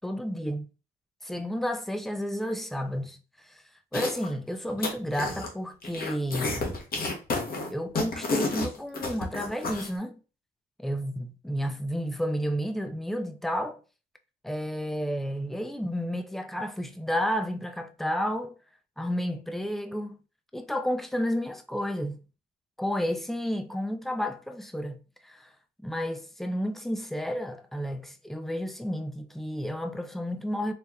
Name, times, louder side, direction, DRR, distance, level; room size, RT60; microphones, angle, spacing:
voice 1, 0.0-0.6 1.2-3.2 3.5-3.6 3.9-6.7 7.7-10.2 10.8-13.8 14.4-18.6 19.0-20.2 20.5-22.2 22.8-25.5 25.8-30.7, equal, ahead, 0.5 m, -31 dB
sound 1, 3.9-4.3 4.6-5.5 5.8-9.9, left 3 dB, 50° left, 1.0 m, -31 dB
4.2 x 3.2 x 2.3 m
cardioid pair, 90°, 20 cm